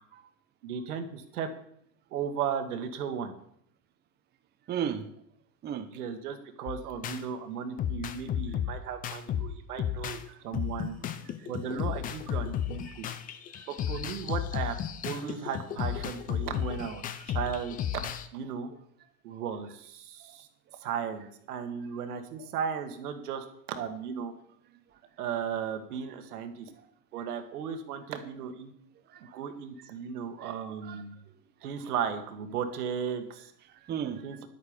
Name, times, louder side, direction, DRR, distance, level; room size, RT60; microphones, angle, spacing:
voice 1, 0.6-1.5 2.1-3.3 5.9-11.0 11.5-13.1 13.7-14.8 15.1-17.1 17.3-18.0 18.3-18.7 19.2-20.5 20.8-24.3 25.2-26.7 27.1-28.7 29.3-31.2 31.6-33.5 34.2-34.5, right 7 dB, 85° right, 7 dB, 1.7 m, -35 dB
voice 2, 4.7-5.1 5.6-6.0 10.3-10.4 11.2-11.5 12.9-13.0 13.5-13.7 19.3-19.4 20.2-20.4 21.8-21.9 24.9-25.0 26.7-26.9 29.1-29.4 30.4-30.5 30.8-31.3 31.6-31.7 33.7-34.3, right 8 dB, 25° right, 7 dB, 0.8 m, -37 dB
sound 1, 6.7-7.2 7.8-10.2 10.5-18.3, left 9 dB, 20° left, 0.4 m, -33 dB
10.5 x 8.4 x 5.1 m, 0.70 s
supercardioid pair, 130°, 44 cm